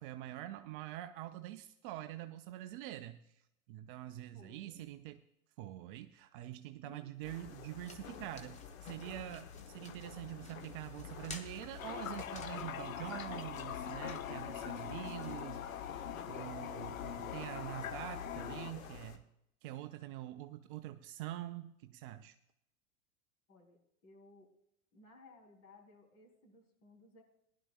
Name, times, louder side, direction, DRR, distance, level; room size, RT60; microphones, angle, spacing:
voice 1, 0.0-3.2 3.7-5.2 5.6-15.6 16.2-19.2 19.6-22.4, right 14 dB, 40° right, 10 dB, 0.6 m, -45 dB
voice 2, 4.3-4.8 6.8-7.2 23.5-24.5 24.9-27.2, left 2 dB, 35° left, 2 dB, 3.4 m, -60 dB
sound 1, 7.2-19.2, left 7 dB, 50° left, 1.3 m, -50 dB
sound 2, 7.2-16.2, left 3 dB, 15° left, 1.2 m, -56 dB
Toilet flush, 11.8-18.7, left 9 dB, 70° left, 0.8 m, -43 dB
19.0 x 11.5 x 2.4 m, 0.78 s
figure-of-eight pair, 90°, 42 cm